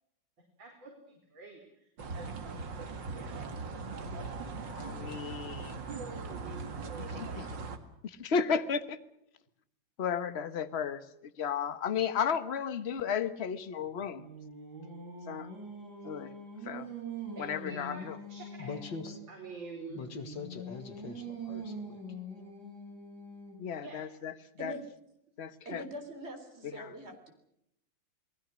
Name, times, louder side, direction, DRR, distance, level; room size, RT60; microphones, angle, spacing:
voice 1, 0.6-4.3 17.3-18.8 19.3-20.0 23.8-24.0, right 3 dB, 90° right, -1 dB, 4.9 m, -48 dB
sound 1, 2.0-7.8, right 4 dB, 75° right, 2.6 m, -40 dB
voice 2, 4.8-5.8 7.2-7.5 8.0-9.0 10.0-11.0 11.4-14.3 15.3-15.5 16.0-16.3 16.6-16.9 17.4-18.2 23.6-24.3 24.6-24.7 25.4-25.8 26.8-26.9, left 7 dB, 40° left, 12 dB, 1.2 m, -33 dB
Singing, 13.8-19.3 19.9-23.8, right 2 dB, 55° right, 6.0 m, -44 dB
voice 3, 18.6-19.2 20.0-22.0, left 5 dB, 75° left, 9 dB, 2.6 m, -42 dB
voice 4, 25.7-27.3, equal, 35° right, 5 dB, 4.0 m, -43 dB
29.0 x 19.5 x 6.3 m, 0.77 s
omnidirectional pair, 2.0 m